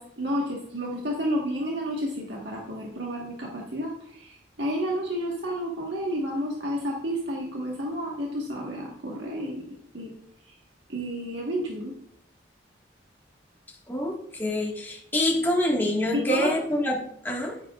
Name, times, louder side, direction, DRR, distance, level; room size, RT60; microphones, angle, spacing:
voice 1, 0.0-9.6 9.9-10.1 10.9-11.9 16.1-16.5, equal, 70° right, -2 dB, 1.4 m, -31 dB
voice 2, 13.9-17.6, left 1 dB, 10° left, -2 dB, 1.6 m, -26 dB
10.0 x 9.7 x 2.4 m, 0.70 s
head